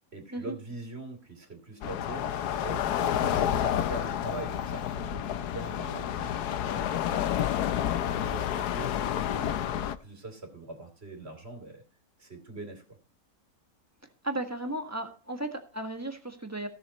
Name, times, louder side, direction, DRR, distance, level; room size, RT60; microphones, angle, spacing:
voice 1, 0.1-7.4 7.8-11.8 12.2-12.8, right 2 dB, 40° right, 5 dB, 3.0 m, -43 dB
sound 1, 1.8-10.0, left 10 dB, 85° left, 1.3 m, -29 dB
voice 2, 14.2-16.7, right 1 dB, 10° right, 5 dB, 1.4 m, -35 dB
16.0 x 7.1 x 4.2 m, 0.37 s
omnidirectional pair, 1.6 m